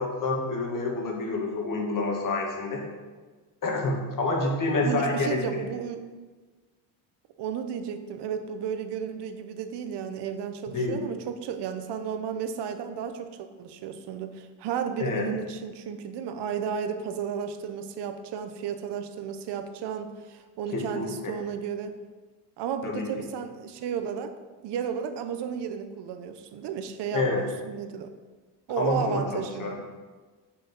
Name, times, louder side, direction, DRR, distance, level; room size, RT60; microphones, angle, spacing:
voice 1, 0.0-2.8 3.6-5.4 10.7-11.0 15.0-15.3 20.7-21.3 22.8-23.1 27.1-27.4 28.8-29.7, left 2 dB, 45° left, 0 dB, 1.8 m, -28 dB
voice 2, 4.8-6.1 7.4-22.0 22.6-24.3 24.6-28.1 28.7-29.7, right 7 dB, 65° right, 8 dB, 0.9 m, -33 dB
6.5 x 5.0 x 5.9 m, 1.4 s
supercardioid pair, 95°, 44 cm